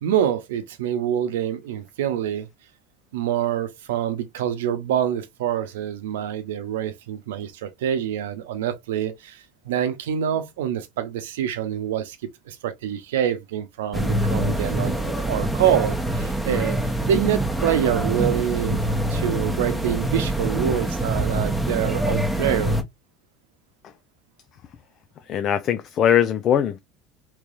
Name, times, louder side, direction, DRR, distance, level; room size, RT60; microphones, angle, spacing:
voice 1, 0.0-2.5 3.1-12.2 12.5-15.0 15.3-16.8 17.0-18.8 19.1-22.8, right 10 dB, 85° right, 0.7 m, -26 dB
sound 1, 13.9-22.8, right 1 dB, ahead, 1.0 m, -25 dB
voice 2, 25.3-26.8, left 9 dB, 50° left, 0.4 m, -20 dB
3.1 x 3.1 x 2.4 m
supercardioid pair, 90°, 0 cm